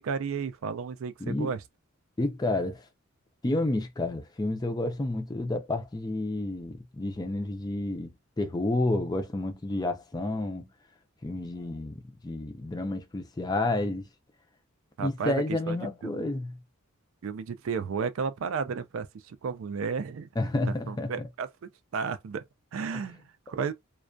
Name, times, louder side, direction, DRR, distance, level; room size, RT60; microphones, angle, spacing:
voice 1, 0.0-1.6 15.0-15.8 16.0-16.3 17.2-20.3 20.9-21.5 21.9-22.4 22.7-23.7, right 5 dB, 70° right, 0.4 m, -33 dB
voice 2, 1.2-1.5 2.2-2.8 3.4-10.7 11.2-14.1 15.0-16.6 20.4-21.3 22.9-23.0, left 2 dB, 20° left, 0.4 m, -30 dB
2.3 x 2.1 x 2.5 m
head